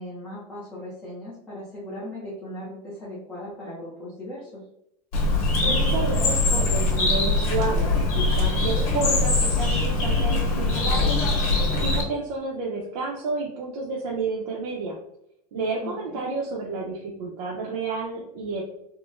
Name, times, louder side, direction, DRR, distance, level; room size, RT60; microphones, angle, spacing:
voice 1, 0.0-4.6 15.8-16.2, left 1 dB, 5° left, -8 dB, 0.5 m, -38 dB
Bird, 5.1-12.0, left 2 dB, 65° left, 1.3 m, -22 dB
voice 2, 5.6-11.2 11.8-15.0 15.5-18.6, right 3 dB, 70° right, -3 dB, 0.7 m, -30 dB
3.7 x 2.1 x 2.4 m, 0.78 s
supercardioid pair, 170°, 20 cm